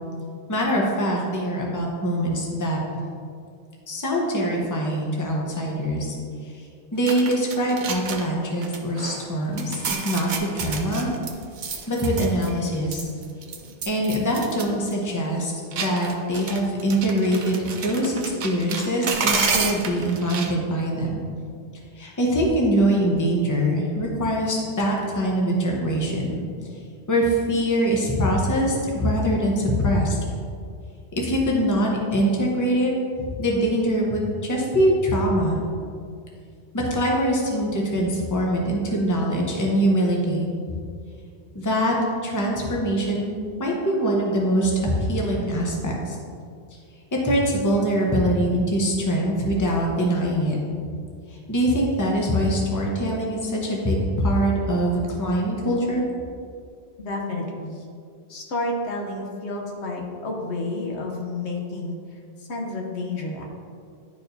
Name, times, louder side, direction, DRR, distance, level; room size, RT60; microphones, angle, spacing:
voice 1, 0.5-2.8 3.9-6.1 6.4-6.5 6.9-11.1 11.9-13.0 13.9-21.2 22.0-26.4 27.1-30.2 31.2-32.9 33.2-35.6 36.7-40.8 41.5-41.9 42.2-46.2 47.1-50.6 51.5-56.0, equal, 20° left, -2 dB, 0.8 m, -23 dB
sound 1, 7.1-8.3 8.6-9.3 9.6-12.7 12.9-14.7 14.9-15.0 15.7-20.5, right 5 dB, 55° right, 0.6 m, -30 dB
voice 2, 57.0-57.9 58.3-62.0 62.4-63.5, left 2 dB, 75° left, 0 dB, 1.1 m, -30 dB
10.5 x 4.4 x 2.7 m, 2.3 s
omnidirectional pair, 1.1 m